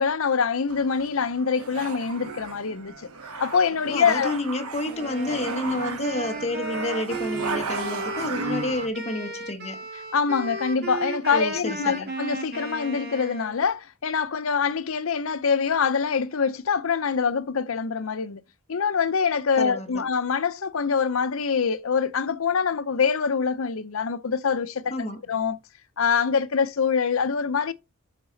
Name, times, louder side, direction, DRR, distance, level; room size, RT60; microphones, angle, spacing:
voice 1, 0.0-3.1 3.4-4.3 10.1-18.4 18.7-24.9 25.3-25.6 26.0-27.7, left 6 dB, 65° left, 0.6 m, -24 dB
sound 1, 0.7-8.9, right 4 dB, 90° right, 1.1 m, -35 dB
voice 2, 3.9-9.8 11.3-12.1 19.6-20.1 24.9-25.2, left 2 dB, 30° left, 1.3 m, -30 dB
Wind instrument woodwind instrument, 4.8-13.6, right 2 dB, 50° right, 1.9 m, -35 dB
7.3 x 4.8 x 3.9 m
head